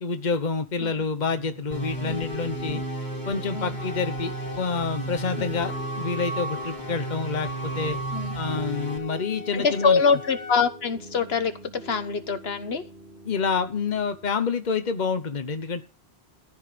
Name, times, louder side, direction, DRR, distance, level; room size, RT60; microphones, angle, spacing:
voice 1, 0.0-2.8 3.3-8.0 8.3-10.0 13.2-15.8, left 5 dB, 45° left, 9 dB, 1.2 m, -28 dB
Piano, 1.2-14.3, equal, 55° right, 2.7 m, -43 dB
sound 1, 1.7-9.0, right 2 dB, 20° left, 1.9 m, -34 dB
voice 2, 2.0-2.3 2.7-2.8 3.5-3.8 5.4-5.5 8.1-8.4 9.5-12.8, left 5 dB, 75° left, 9 dB, 1.3 m, -25 dB
Wind instrument woodwind instrument, 3.8-10.6, equal, 80° right, 3.8 m, -39 dB
14.5 x 5.6 x 8.5 m, 0.34 s
omnidirectional pair, 1.1 m